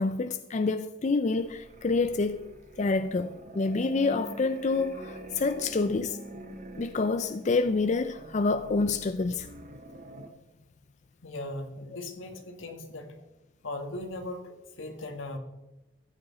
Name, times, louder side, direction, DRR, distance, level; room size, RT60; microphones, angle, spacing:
voice 1, 0.0-2.5 2.8-6.2 6.8-9.5, left 3 dB, 35° left, 0.4 m, -27 dB
sound 1, 1.4-10.3, right 1 dB, 40° right, 1.2 m, -45 dB
voice 2, 11.2-13.1 13.6-14.5 14.8-15.4, left 2 dB, 80° left, 1.7 m, -38 dB
14.5 x 8.6 x 4.1 m
head